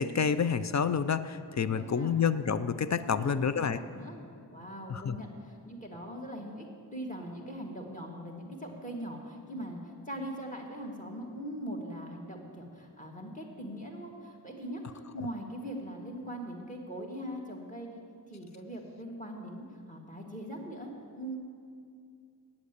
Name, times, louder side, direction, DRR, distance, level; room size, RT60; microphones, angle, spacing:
voice 1, 0.0-3.8 4.9-5.2 15.2-15.3, left 6 dB, 45° left, 13 dB, 0.5 m, -29 dB
voice 2, 1.5-2.2 3.0-4.2 4.5-6.7 6.9-9.8 10.1-18.0 18.3-21.4, equal, 20° left, 1 dB, 1.9 m, -41 dB
8.5 x 8.0 x 8.2 m, 2.3 s
wide cardioid pair, 65°, 39 cm